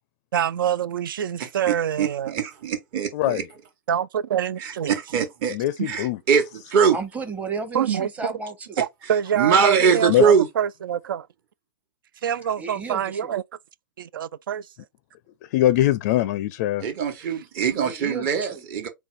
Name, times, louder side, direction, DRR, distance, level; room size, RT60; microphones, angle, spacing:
voice 1, 0.3-2.4 3.9-4.9 5.8-5.9 7.7-8.1 8.8-11.3 12.2-13.4 14.0-14.7, right 9 dB, 75° right, 0.4 m, -26 dB
voice 2, 1.4-3.4 4.6-5.6 5.9-7.0 9.3-10.5 16.8-18.9, right 6 dB, 40° right, 1.2 m, -22 dB
voice 3, 3.1-3.4 5.5-6.2 10.1-10.2 15.5-16.8, left 14 dB, 45° left, 0.4 m, -22 dB
voice 4, 6.9-8.8 9.6-10.1 12.6-13.3 17.8-18.7, right 4 dB, 10° right, 0.9 m, -34 dB
4.0 x 2.3 x 4.6 m
hypercardioid pair, 125°, 11 cm